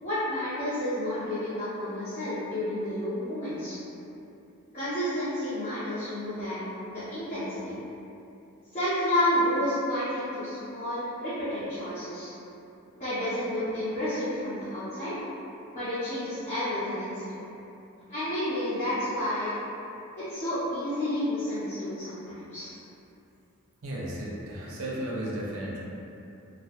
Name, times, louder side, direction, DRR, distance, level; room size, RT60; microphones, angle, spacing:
voice 1, 0.0-3.8 4.7-7.7 8.7-12.3 12.9-15.1 15.7-17.4 18.1-19.5 20.2-22.7, left 1 dB, 30° left, -15 dB, 0.6 m, -30 dB
voice 2, 23.8-25.8, right 1 dB, 70° right, -5 dB, 0.4 m, -34 dB
2.2 x 2.0 x 2.8 m, 2.8 s
head